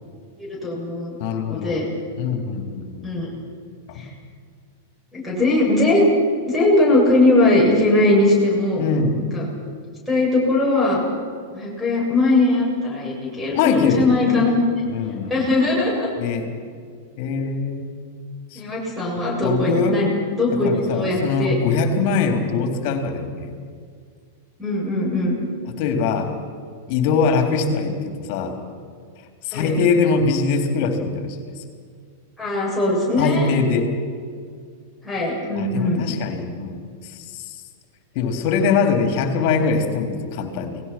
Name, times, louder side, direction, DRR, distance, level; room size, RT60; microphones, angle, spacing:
voice 1, 0.4-1.1 1.5-1.9 3.0-3.3 4.0-4.1 5.1-6.1 6.5-8.8 9.2-9.5 10.1-11.0 11.5-14.6 15.3-16.1 18.5-21.5 24.6-25.4 29.5-29.7 32.4-33.6 35.0-36.0, left 2 dB, ahead, -7 dB, 7.8 m, -20 dB
voice 2, 1.2-1.8 2.2-3.1 3.9-4.0 8.8-9.2 13.5-14.6 14.9-15.4 16.2-16.5 17.2-17.9 18.5-18.6 19.4-20.0 20.6-23.5 25.8-26.3 26.9-28.6 29.4-31.4 33.2-33.9 35.6-37.6 38.1-40.8, left 5 dB, 50° left, 5 dB, 3.7 m, -22 dB
29.5 x 20.0 x 6.1 m, 2.1 s
figure-of-eight pair, 95°, 0 cm